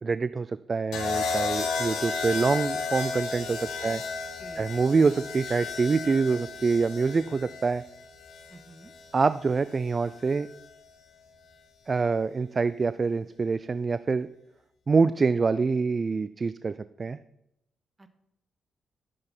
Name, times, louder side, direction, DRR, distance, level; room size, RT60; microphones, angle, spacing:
voice 1, 0.0-4.0 4.6-7.8 9.1-10.5 11.9-14.3 14.9-16.7 17.0-17.2, right 4 dB, 40° right, 14 dB, 0.4 m, -25 dB
sound 1, 0.9-9.0 10.3-10.6, left 4 dB, 80° left, 2.0 m, -33 dB
voice 2, 4.4-4.8 8.5-8.9 18.0-18.1, right 2 dB, 25° right, 8 dB, 1.8 m, -49 dB
13.0 x 7.6 x 4.5 m, 0.82 s
supercardioid pair, 55°, 0 cm